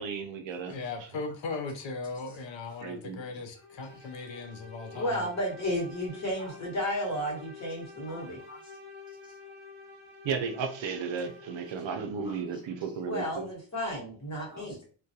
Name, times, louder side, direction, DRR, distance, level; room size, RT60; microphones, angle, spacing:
voice 1, 0.0-0.8 2.8-3.2 10.2-13.5, right 5 dB, 70° right, 0.5 m, -34 dB
voice 2, 0.7-5.3, left 4 dB, 70° left, 0.6 m, -38 dB
voice 3, 3.3-4.1 4.9-5.2 6.4-6.6 8.1-8.8 9.1-9.4 11.2-11.3 12.2-12.9 14.5-14.8, left 2 dB, 10° right, 0.4 m, -51 dB
sound 1, 3.5-11.9, left 4 dB, 35° right, 0.9 m, -49 dB
voice 4, 4.9-8.4 13.0-14.8, equal, 35° left, 1.1 m, -33 dB
2.3 x 2.1 x 2.7 m
wide cardioid pair, 125°, 48 cm